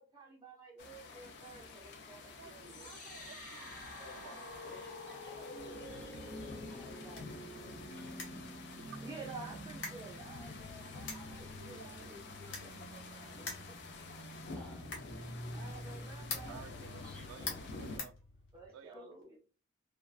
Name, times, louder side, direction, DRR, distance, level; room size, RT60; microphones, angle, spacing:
voice 1, 0.0-2.9 8.1-8.3 9.0-13.8 15.5-16.6 18.5-19.2, right 3 dB, 20° right, 0.4 m, -52 dB
sound 1, 0.8-18.0, left 3 dB, 55° left, 0.4 m, -49 dB
voice 2, 2.4-4.5 8.8-9.0 11.2-11.3 11.6-12.4 16.2-18.1 18.7-19.0, right 7 dB, 85° right, 0.3 m, -55 dB
sound 2, 2.7-18.7, equal, 40° left, 0.8 m, -49 dB
voice 3, 4.0-8.1 14.5-14.9 17.0-17.6 18.9-19.4, left 1 dB, 5° left, 0.8 m, -57 dB
sound 3, 8.1-18.9, left 4 dB, 75° left, 0.8 m, -49 dB
2.3 x 2.2 x 2.3 m
head